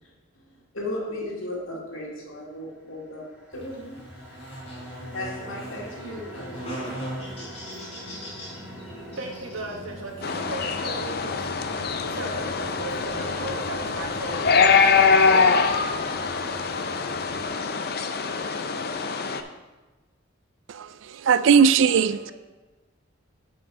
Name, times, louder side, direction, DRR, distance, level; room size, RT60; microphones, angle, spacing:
voice 1, 0.7-3.3 3.5-4.0 5.1-6.9 22.3-22.4, left 1 dB, 80° left, 2.2 m, -35 dB
sound 1, 3.2-18.4, left 1 dB, 5° right, 1.6 m, -44 dB
Buzz, 3.5-17.5, equal, 30° left, 2.9 m, -42 dB
voice 2, 9.2-15.2, right 2 dB, 85° right, 1.3 m, -37 dB
sound 2, 10.2-19.4, left 5 dB, 50° left, 0.5 m, -23 dB
voice 3, 21.2-22.3, right 6 dB, 65° right, 0.4 m, -18 dB
9.0 x 5.1 x 4.6 m
head